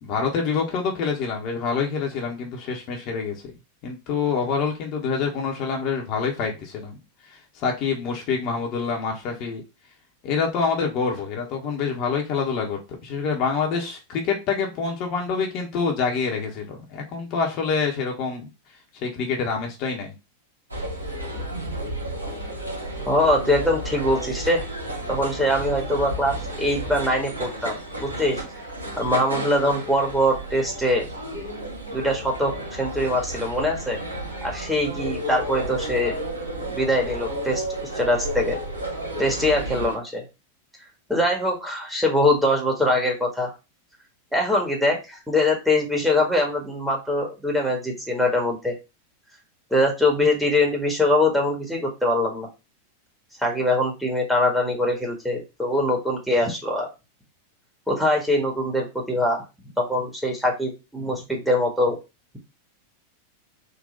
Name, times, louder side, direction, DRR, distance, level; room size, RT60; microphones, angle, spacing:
voice 1, 0.0-3.3 3.8-7.0 7.3-9.6 10.2-18.5 19.0-20.1, left 5 dB, 40° left, 0 dB, 1.1 m, -26 dB
sound 1, 20.7-40.0, right 1 dB, 80° right, 1.5 m, -32 dB
voice 2, 23.1-24.7 25.1-28.4 29.0-31.1 31.9-34.0 34.4-36.1 36.6-38.6 39.2-40.2 41.1-43.5 44.3-48.7 49.7-52.5 53.4-56.9 57.9-59.4 59.8-62.0, left 1 dB, 5° right, -1 dB, 1.5 m, -23 dB
4.0 x 2.6 x 3.8 m, 0.27 s
figure-of-eight pair, 90°, 0 cm